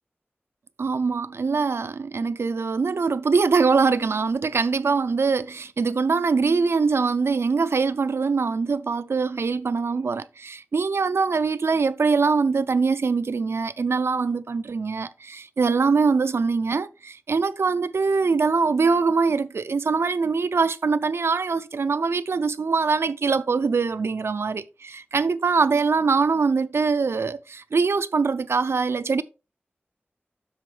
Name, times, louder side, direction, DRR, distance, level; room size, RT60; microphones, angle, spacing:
voice 1, 0.8-29.2, right 4 dB, 85° right, 0.4 m, -23 dB
7.9 x 6.0 x 3.3 m
wide cardioid pair, 70°, 4 cm